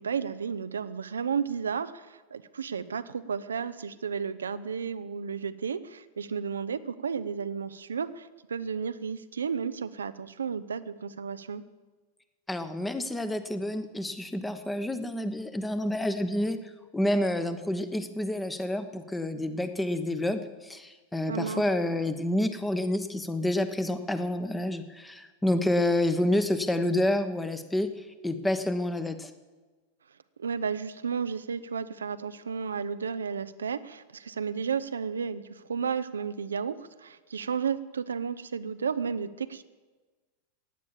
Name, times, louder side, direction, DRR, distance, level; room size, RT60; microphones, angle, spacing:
voice 1, 0.0-11.6 21.3-21.6 30.4-39.6, right 6 dB, 70° right, 12 dB, 0.6 m, -33 dB
voice 2, 12.5-16.6 16.9-27.9 28.2-29.3, left 1 dB, 10° left, 10 dB, 1.1 m, -28 dB
16.0 x 9.8 x 7.2 m, 1.3 s
figure-of-eight pair, 90°, 0 cm